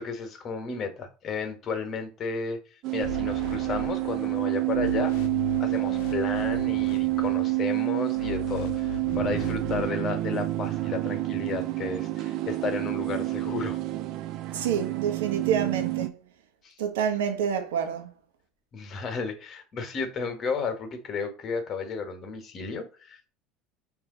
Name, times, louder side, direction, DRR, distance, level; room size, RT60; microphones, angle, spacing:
voice 1, 0.0-2.6 2.9-5.1 5.6-13.8 16.6-16.7 18.7-23.2, left 5 dB, 40° left, 1.4 m, -33 dB
sound 1, 2.8-16.1, right 19 dB, 60° right, 0.5 m, -28 dB
sound 2, 3.0-4.4 4.7-7.6 8.2-9.9, left 6 dB, 70° left, 0.8 m, -38 dB
voice 2, 14.5-16.1 16.8-18.1, right 8 dB, 85° right, 1.0 m, -28 dB
4.8 x 2.8 x 3.9 m
supercardioid pair, 90°, 0 cm